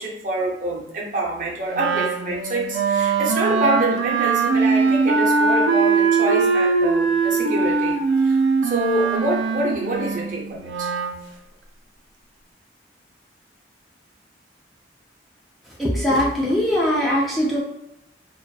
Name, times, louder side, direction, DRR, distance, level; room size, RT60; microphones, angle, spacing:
voice 1, 0.0-10.9, right 2 dB, 45° right, -3 dB, 0.6 m, -26 dB
Wind instrument woodwind instrument, 1.7-11.2, right 4 dB, 90° right, 0.3 m, -21 dB
voice 2, 15.8-17.6, equal, ahead, -6 dB, 0.4 m, -21 dB
2.4 x 2.2 x 2.3 m, 0.85 s
head